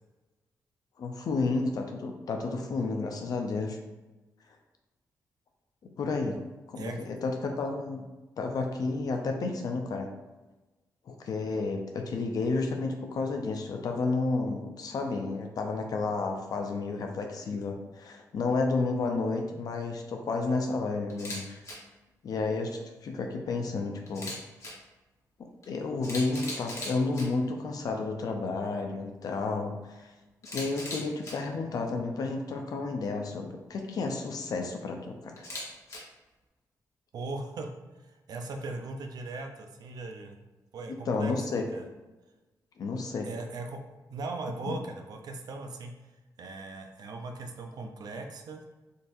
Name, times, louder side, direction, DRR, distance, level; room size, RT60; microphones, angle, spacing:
voice 1, 1.0-3.8 6.0-6.4 6.7-8.0 8.4-10.1 11.1-21.6 22.2-24.3 25.7-30.1 30.5-35.4 41.1-41.6 42.8-43.3 44.7-44.8, left 3 dB, 65° left, 3 dB, 0.4 m, -31 dB
voice 2, 6.7-7.0 37.1-40.4 40.7-41.9 43.2-43.8 44.1-48.6, right 3 dB, 70° right, 4 dB, 0.5 m, -39 dB
Camera, 21.1-21.4 21.6-21.7 24.1-24.7 25.6-25.7 26.0-27.2 30.4-31.3 35.4-36.0, left 1 dB, 45° left, 1.0 m, -38 dB
3.9 x 2.5 x 2.5 m, 1.1 s
cardioid pair, 85°, 7 cm